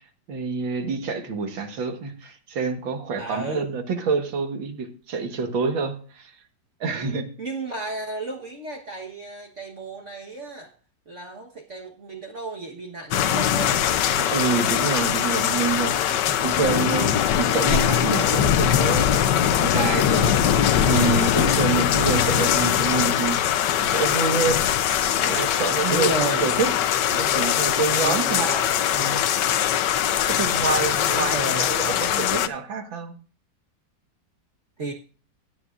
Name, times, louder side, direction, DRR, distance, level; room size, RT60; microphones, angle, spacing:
voice 1, 0.3-6.3 6.8-7.3 14.2-19.1 19.3-23.4 23.8-24.7 25.2-26.7 27.1-29.2 30.3-33.1, right 5 dB, 85° right, 6 dB, 2.3 m, -27 dB
voice 2, 3.2-3.7 7.0-10.7 11.1-13.9 14.4-15.5 16.0-16.8 17.1-17.3 25.9-26.5 28.0-28.5 31.1-31.7 34.8-34.9, right 3 dB, 40° right, 1 dB, 1.5 m, -34 dB
sound 1, 13.1-32.5, left 10 dB, 70° left, 1.3 m, -21 dB
16.5 x 9.9 x 2.5 m, 0.39 s
omnidirectional pair, 2.1 m